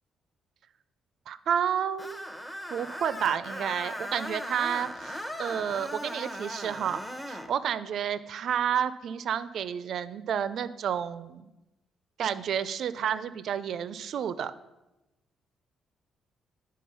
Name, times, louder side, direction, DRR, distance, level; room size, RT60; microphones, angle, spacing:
voice 1, 1.3-2.3 2.7-7.0 7.3-11.5 12.2-14.5, right 8 dB, 65° right, 14 dB, 0.4 m, -30 dB
Screech, 2.0-7.5, equal, 5° left, 0.8 m, -38 dB
9.3 x 3.8 x 5.4 m, 1.0 s
cardioid pair, 90°, 0 cm